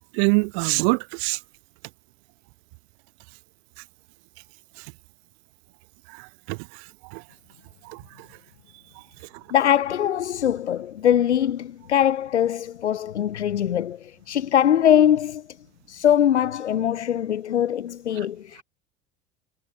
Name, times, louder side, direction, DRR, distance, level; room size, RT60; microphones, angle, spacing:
voice 1, 0.1-1.4 4.8-4.9 6.1-7.2 7.8-8.3 8.9-9.0 9.3-9.4 18.2-18.3, right 40 dB or more, 65° right, 5.1 m, -26 dB
voice 2, 9.5-18.6, left 10 dB, 90° left, 7.6 m, -22 dB
hypercardioid pair, 80°, 33 cm